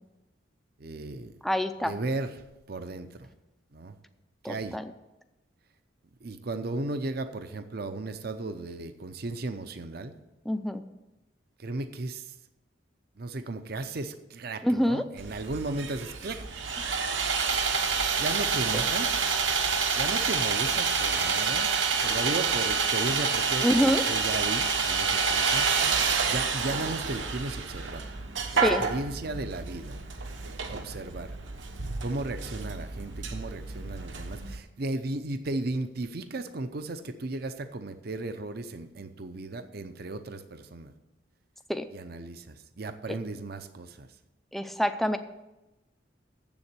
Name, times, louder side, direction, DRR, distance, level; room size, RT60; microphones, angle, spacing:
voice 1, 0.8-1.4 1.8-2.3 2.7-3.3 3.7-4.0 4.4-4.8 6.2-10.1 11.6-12.3 13.2-16.4 18.2-19.2 19.9-21.7 22.0-28.1 28.5-30.0 30.4-31.4 32.0-40.9 41.9-44.1, right 2 dB, 50° right, 9 dB, 0.6 m, -35 dB
voice 2, 1.4-2.0 4.4-4.8 10.5-10.8 14.6-15.0 23.6-24.0 28.5-28.8 41.7-41.8 43.1-43.2 44.5-45.2, equal, ahead, 9 dB, 0.5 m, -26 dB
Sawing, 15.2-34.6, right 5 dB, 75° right, 1.0 m, -28 dB
7.6 x 7.1 x 8.1 m, 1.0 s
head